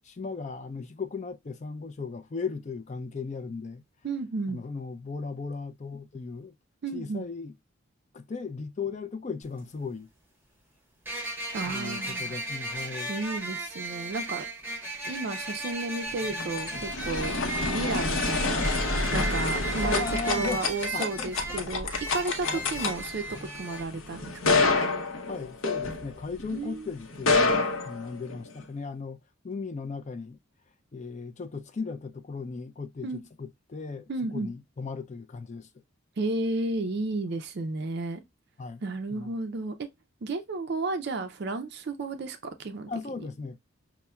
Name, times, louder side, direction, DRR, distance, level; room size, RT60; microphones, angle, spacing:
voice 1, 0.0-3.8 4.5-6.5 6.9-7.5 8.1-10.1 11.6-13.1 18.6-18.7 19.5-20.6 20.9-21.7 22.5-22.6 25.3-30.4 30.9-33.1 33.4-34.0 34.3-35.7 38.6-38.8 39.1-39.3 42.9-43.6, left 4 dB, 35° left, 0.4 m, -37 dB
voice 2, 4.0-4.6 6.8-7.3 11.5-12.4 13.1-14.4 15.1-17.3 17.7-18.6 19.1-24.6 26.5-26.9 33.0-33.2 34.1-34.5 36.2-38.2 38.8-39.9 40.2-42.9 43.2-43.3, right 3 dB, 50° right, 0.4 m, -33 dB
sound 1, 9.4-9.5 11.1-23.8, right 2 dB, 10° right, 0.7 m, -36 dB
sound 2, 16.1-26.5 27.1-28.6, left 3 dB, 70° left, 0.7 m, -28 dB
5.4 x 2.1 x 2.2 m
head